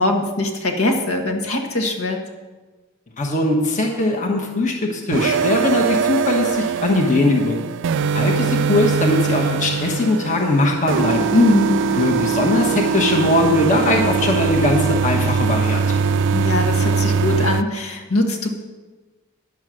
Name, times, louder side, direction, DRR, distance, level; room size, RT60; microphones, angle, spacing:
voice 1, 0.0-2.2 11.3-11.9 16.3-18.5, left 2 dB, 80° left, 2 dB, 1.6 m, -21 dB
voice 2, 3.2-7.6 8.1-11.3 11.9-16.0, left 2 dB, 35° left, 2 dB, 1.1 m, -20 dB
sound 1, 5.1-17.6, right 5 dB, 60° right, 0.3 m, -21 dB
10.5 x 7.3 x 6.2 m, 1.3 s
head